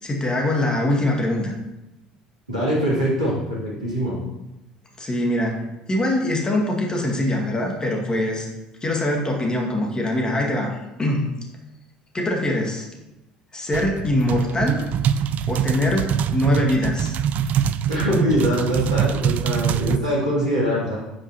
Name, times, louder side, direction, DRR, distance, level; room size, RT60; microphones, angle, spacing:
voice 1, 0.0-1.5 5.0-5.6 5.9-8.5 8.8-10.7 11.0-11.3 12.1-12.9 13.5-14.8 15.5-17.1, left 1 dB, 20° left, 0 dB, 2.1 m, -23 dB
voice 2, 2.5-4.2 17.9-21.0, equal, 85° right, -7 dB, 3.1 m, -23 dB
sound 1, 13.7-20.0, right 8 dB, 45° right, 0.4 m, -24 dB
8.7 x 8.2 x 3.0 m, 0.94 s
figure-of-eight pair, 60°, 4 cm